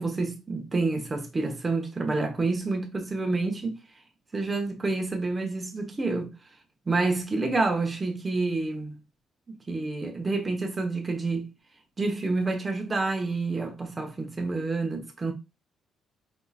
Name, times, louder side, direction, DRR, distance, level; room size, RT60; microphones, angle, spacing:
voice 1, 0.0-3.8 4.3-6.3 6.9-9.0 9.5-11.5 12.0-15.3, right 3 dB, 25° right, 1.1 m, -28 dB
4.6 x 4.1 x 2.4 m
cardioid pair, 90°, 0 cm